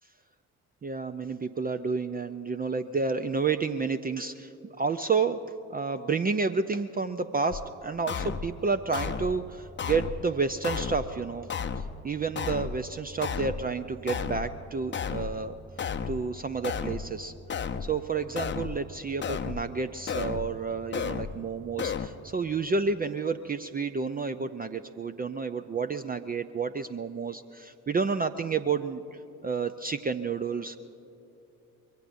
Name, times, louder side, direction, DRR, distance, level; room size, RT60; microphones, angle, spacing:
voice 1, 0.8-11.5 12.0-15.6 16.1-17.3 17.8-29.0 29.4-30.8, right 4 dB, 20° right, 9 dB, 0.5 m, -30 dB
sound 1, 7.5-7.6 8.1-8.5 8.9-9.3 9.8-10.2 10.6-11.1 11.5-11.9 12.4-12.8 13.2-13.6 14.1-14.5 14.9-15.4 15.8-16.2 16.6-17.1 17.5-17.9 18.4-18.8 19.2-19.6 20.1-20.5 20.9-21.3 21.8-22.1, left 6 dB, 25° left, 0.7 m, -32 dB
25.0 x 22.0 x 2.6 m, 2.8 s
hypercardioid pair, 45°, 45 cm